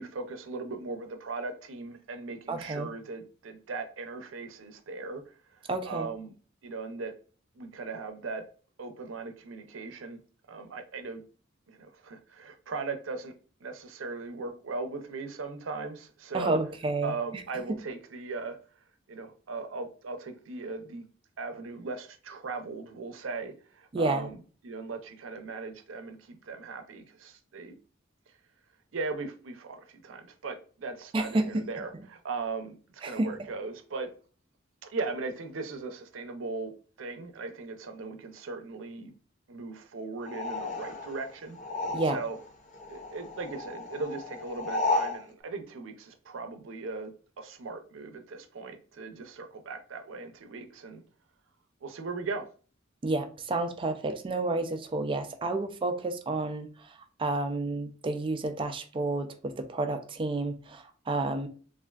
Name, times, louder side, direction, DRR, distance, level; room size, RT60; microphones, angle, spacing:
voice 1, 0.0-5.2 5.9-6.3 6.6-7.1 7.6-8.4 8.8-10.2 10.5-11.2 11.7-13.3 13.6-16.6 17.0-18.6 19.1-21.1 21.4-27.7 28.9-32.8 33.0-34.1 34.8-36.7 37.0-39.1 39.5-41.6 42.1-42.4 42.9-51.0 51.8-52.4, right 3 dB, 80° right, 0.5 m, -38 dB
voice 2, 2.5-2.9 5.7-6.1 16.3-17.1 23.9-24.3 31.1-31.6 33.0-33.5 41.9-42.2 53.0-61.5, right 2 dB, 25° right, 0.3 m, -30 dB
viento largo, 40.2-42.5 42.7-45.2, left 2 dB, 40° left, 0.4 m, -33 dB
3.3 x 2.5 x 2.3 m
head